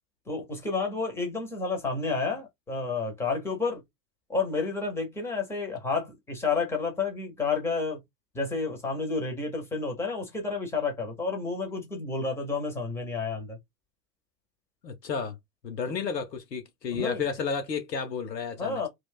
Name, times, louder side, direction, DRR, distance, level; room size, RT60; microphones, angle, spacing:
voice 1, 0.3-3.8 4.3-8.0 8.3-13.6 17.0-17.2 18.6-18.9, left 4 dB, 5° left, 0.5 m, -30 dB
voice 2, 14.8-15.4 15.6-18.8, left 6 dB, 80° left, 0.7 m, -32 dB
2.4 x 2.2 x 3.5 m
figure-of-eight pair, 90°, 49 cm